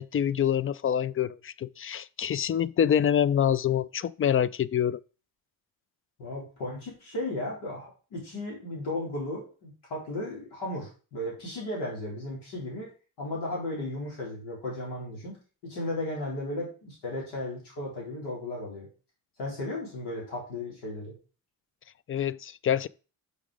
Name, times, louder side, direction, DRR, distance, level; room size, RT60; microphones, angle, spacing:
voice 1, 0.0-5.0 22.1-22.9, left 9 dB, 35° left, 0.4 m, -26 dB
voice 2, 6.2-12.9 13.2-15.4 15.6-18.9 19.4-21.1, left 1 dB, 90° left, 4.1 m, -35 dB
6.4 x 6.2 x 4.9 m
cardioid pair, 80°, 39 cm